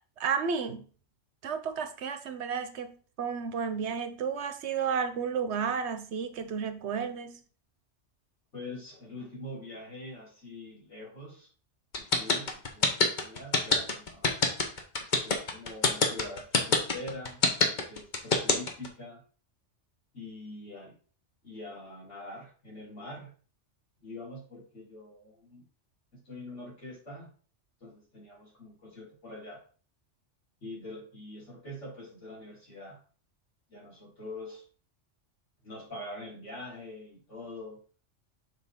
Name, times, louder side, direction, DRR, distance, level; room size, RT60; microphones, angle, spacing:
voice 1, 0.2-0.9 1.4-7.4, right 6 dB, 70° right, 1.0 m, -32 dB
voice 2, 8.5-11.5 12.0-14.4 15.2-17.4 17.9-19.2 20.1-21.0 21.4-23.3 24.0-25.6 26.1-27.3 27.8-29.6 30.6-33.0 33.7-34.6 35.6-37.8, left 1 dB, 75° left, 4.3 m, -44 dB
sound 1, 11.9-18.9, left 3 dB, 40° left, 1.1 m, -24 dB
6.8 x 4.5 x 3.6 m
omnidirectional pair, 1.2 m